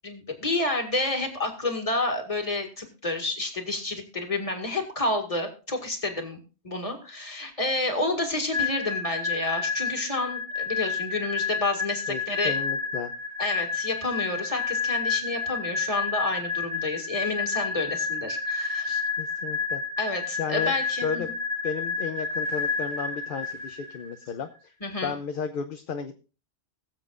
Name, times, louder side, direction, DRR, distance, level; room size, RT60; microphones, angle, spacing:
voice 1, 0.0-6.4 6.6-12.6 13.4-19.0 20.0-21.2 24.8-25.1, left 2 dB, 30° left, 3 dB, 2.1 m, -29 dB
sound 1, 8.5-24.1, left 5 dB, 40° right, 2.4 m, -30 dB
voice 2, 12.1-13.1 19.2-19.8 20.4-21.3 21.6-24.7 25.0-26.2, left 6 dB, 55° left, 7 dB, 0.8 m, -33 dB
21.5 x 7.5 x 2.5 m, 0.34 s
omnidirectional pair, 1.2 m